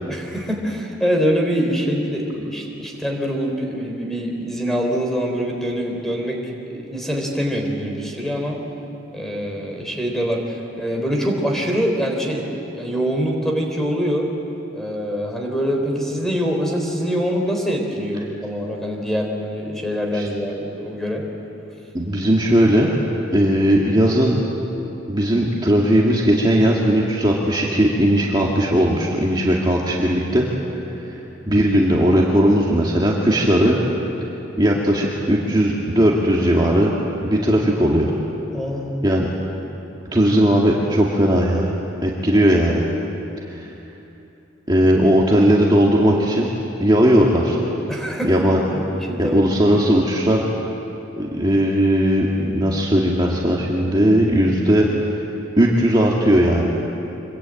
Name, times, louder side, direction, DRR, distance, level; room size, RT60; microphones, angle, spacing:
voice 1, 0.1-8.6 9.1-14.3 14.7-21.3 30.9-31.0 38.5-39.1 47.9-48.3 48.7-49.4, equal, ahead, 1 dB, 3.6 m, -24 dB
voice 2, 21.9-22.9 23.3-24.4 25.1-30.5 31.1-31.2 31.5-33.8 34.6-36.9 37.2-38.1 39.0-39.3 40.1-41.7 42.0-42.8 43.6-43.7 44.7-46.5 46.8-47.6 48.3-48.6 49.2-50.4 51.2-54.9 55.6-56.7, equal, 20° right, -3 dB, 2.0 m, -17 dB
25.5 x 22.5 x 9.0 m, 2.9 s
head